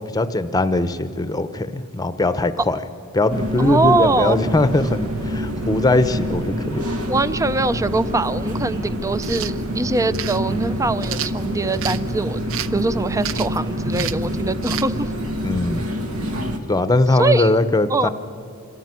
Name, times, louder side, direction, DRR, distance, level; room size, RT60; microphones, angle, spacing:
voice 1, 0.1-2.8 3.1-6.9 15.4-15.9 16.7-18.1, left 2 dB, 15° left, 11 dB, 0.7 m, -20 dB
sound 1, 3.3-16.6, equal, 80° right, 1.9 m, -26 dB
voice 2, 3.6-4.4 7.1-12.4 12.7-15.1 17.1-17.5 17.9-18.1, right 2 dB, 15° right, 15 dB, 0.4 m, -22 dB
sound 2, 9.2-9.5 10.1-10.4 11.0-12.0 12.5-12.8 13.2-13.6 13.9-14.3 14.6-14.9, right 11 dB, 65° right, 0.6 m, -30 dB
26.0 x 14.0 x 9.7 m, 2.6 s
head